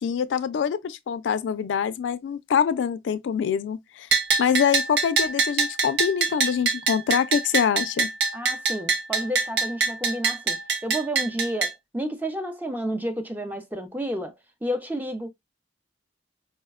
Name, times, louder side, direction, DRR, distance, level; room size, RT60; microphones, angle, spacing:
voice 1, 0.0-4.1 4.4-8.1, left 7 dB, 80° left, 0.3 m, -25 dB
Bell, 4.1-11.7, right 4 dB, 65° right, 0.5 m, -25 dB
voice 2, 8.3-10.6 10.8-14.3 14.6-15.3, equal, 10° right, 0.4 m, -30 dB
4.6 x 2.1 x 2.2 m
head